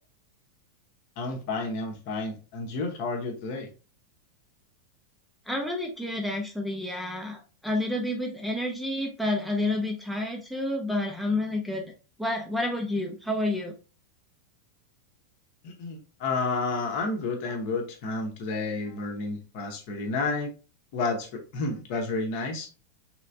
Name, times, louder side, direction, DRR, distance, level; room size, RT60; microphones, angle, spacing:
voice 1, 1.2-3.7 15.6-20.5 20.9-22.7, left 3 dB, 45° left, 0.9 m, -31 dB
voice 2, 5.5-7.4 7.6-11.8 12.2-13.7, left 1 dB, ahead, 0.6 m, -29 dB
3.2 x 3.0 x 2.5 m
figure-of-eight pair, 90°, 0 cm